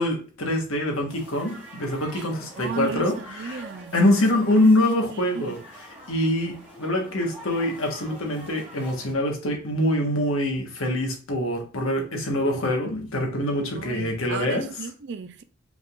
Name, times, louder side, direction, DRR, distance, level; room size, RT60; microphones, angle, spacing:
voice 1, 0.0-3.6 3.9-5.6 6.1-14.7, left 1 dB, 75° left, 1.3 m, -24 dB
sound 1, 1.1-9.1, equal, 10° right, 1.8 m, -45 dB
voice 2, 2.6-4.2 4.5-4.7 5.1-5.6 13.7-15.4, right 6 dB, 55° right, 0.4 m, -35 dB
5.1 x 3.6 x 2.4 m
head